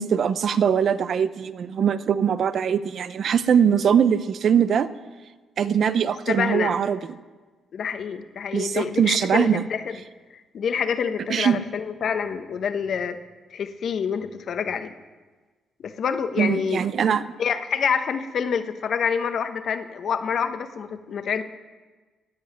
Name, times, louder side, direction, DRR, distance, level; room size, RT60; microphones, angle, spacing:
voice 1, 0.0-4.9 5.6-7.0 8.5-9.6 11.3-11.6 16.4-17.2, right 8 dB, 60° right, 14 dB, 0.6 m, -21 dB
voice 2, 6.3-6.8 7.7-10.0 10.5-13.2 13.5-14.9 15.8-16.8 17.4-21.4, left 7 dB, 60° left, 9 dB, 1.0 m, -27 dB
16.0 x 5.6 x 9.6 m, 1.3 s
cardioid pair, 90°, 0 cm